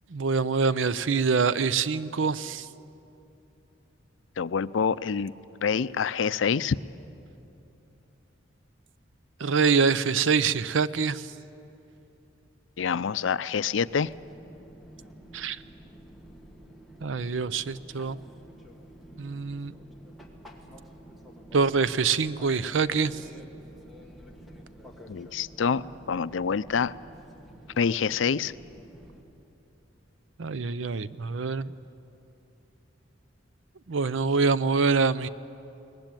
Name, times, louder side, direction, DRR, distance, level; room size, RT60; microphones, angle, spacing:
voice 1, 0.1-2.7 9.4-11.3 15.3-15.6 17.0-18.2 19.2-19.7 21.5-23.2 30.4-31.7 33.9-35.3, right 5 dB, 80° right, 16 dB, 0.6 m, -25 dB
voice 2, 4.4-5.3 5.6-6.8 12.8-14.1 25.1-26.9 27.8-28.5, left 6 dB, 80° left, 17 dB, 0.5 m, -26 dB
Fixed-wing aircraft airplane, 13.8-29.2, equal, ahead, 1.9 m, -49 dB
22.5 x 19.5 x 9.1 m, 2.8 s
head